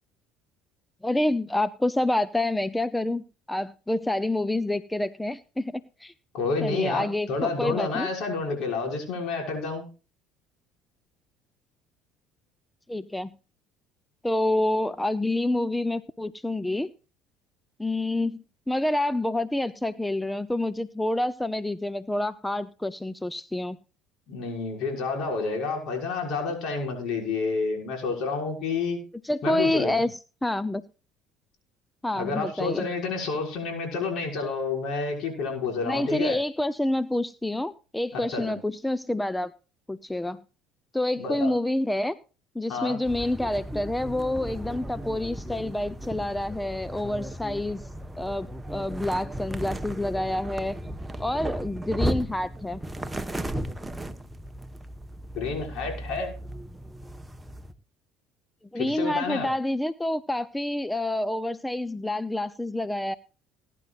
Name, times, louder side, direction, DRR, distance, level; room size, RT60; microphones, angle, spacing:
voice 1, 1.0-6.1 6.6-8.1 12.9-13.3 14.2-16.9 17.8-23.8 29.2-30.8 32.0-32.9 35.8-39.5 39.9-40.4 40.9-42.2 42.5-47.8 48.2-50.8 51.2-52.8 58.7-63.2, left 1 dB, 10° left, 16 dB, 0.7 m, -28 dB
voice 2, 6.3-9.8 24.3-29.0 29.4-29.9 32.2-36.4 38.1-38.5 41.2-41.5 42.7-43.0 55.3-56.3 58.7-59.5, left 4 dB, 60° left, 1 dB, 6.1 m, -29 dB
sound 1, 43.0-57.7, right 1 dB, 10° right, 1.3 m, -35 dB
20.0 x 10.5 x 2.5 m, 0.33 s
hypercardioid pair, 60°, 0 cm